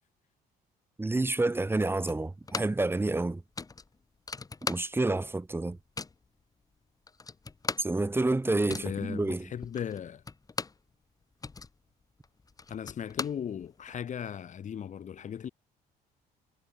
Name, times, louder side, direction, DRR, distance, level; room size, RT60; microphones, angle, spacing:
voice 1, 1.0-3.4 4.7-5.8 7.8-9.5, right 2 dB, 15° right, 3.5 m, -28 dB
sound 1, 2.1-2.9 3.2-3.3 3.6-5.2 5.5-6.3 6.8-6.9 7.1-10.9 11.2-14.0, left 4 dB, 20° left, 2.2 m, -39 dB
voice 2, 8.7-10.2 12.7-15.5, left 8 dB, 45° left, 3.6 m, -37 dB
cardioid pair, 110°, 17 cm